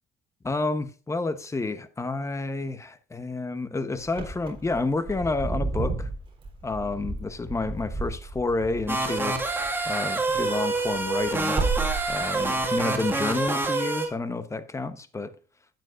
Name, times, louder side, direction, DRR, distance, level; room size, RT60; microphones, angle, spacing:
voice 1, 0.4-6.1 6.6-9.4 9.9-11.6 12.1-15.3, left 3 dB, 15° left, 1.0 m, -30 dB
Wind / Car, 4.1-9.9 10.2-12.7, right 3 dB, 30° right, 4.0 m, -32 dB
sound 1, 8.9-14.1, right 3 dB, 15° right, 2.0 m, -27 dB
12.5 x 9.1 x 2.6 m
cardioid pair, 110°, 17 cm